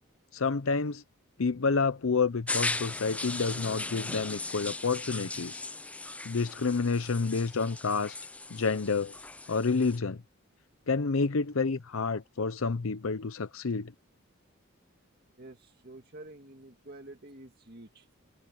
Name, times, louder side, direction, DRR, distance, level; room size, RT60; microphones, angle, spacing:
voice 1, 0.3-1.0 1.4-5.6 6.2-8.2 8.5-9.2 9.5-10.2 10.9-13.9, left 4 dB, 70° left, 0.7 m, -29 dB
sound 1, 2.5-10.0, left 2 dB, 5° left, 0.3 m, -38 dB
voice 2, 15.4-18.1, right 2 dB, 45° right, 2.1 m, -49 dB
head